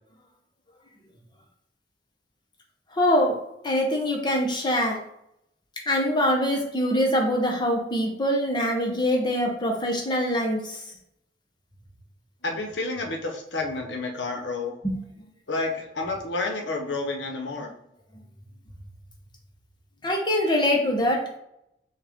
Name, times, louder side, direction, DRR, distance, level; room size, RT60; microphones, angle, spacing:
voice 1, 2.9-3.4 3.6-5.0 5.9-10.8 14.8-15.0 20.0-21.2, equal, 25° left, 0 dB, 0.9 m, -24 dB
voice 2, 12.4-14.7 15.5-17.7, left 3 dB, 80° left, 2 dB, 0.9 m, -30 dB
6.0 x 2.4 x 3.6 m, 0.78 s
head